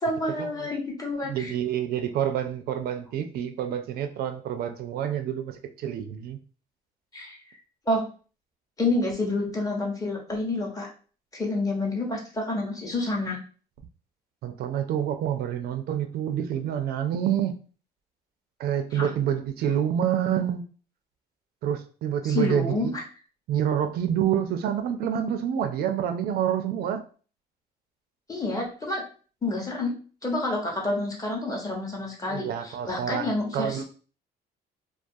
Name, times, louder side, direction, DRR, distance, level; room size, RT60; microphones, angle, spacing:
voice 1, 0.0-1.5 7.1-7.4 7.9-8.1 8.8-10.9 11.3-13.4 18.9-19.1 22.2-23.0 28.3-29.0 29.4-29.9 30.2-33.8, left 2 dB, 20° left, 0 dB, 0.8 m, -28 dB
voice 2, 1.3-6.4 14.4-17.6 18.6-20.6 21.6-22.9 23.5-27.0 32.3-33.8, right 9 dB, 65° right, 7 dB, 0.4 m, -27 dB
2.3 x 2.2 x 2.6 m, 0.39 s
cardioid pair, 110°, 17 cm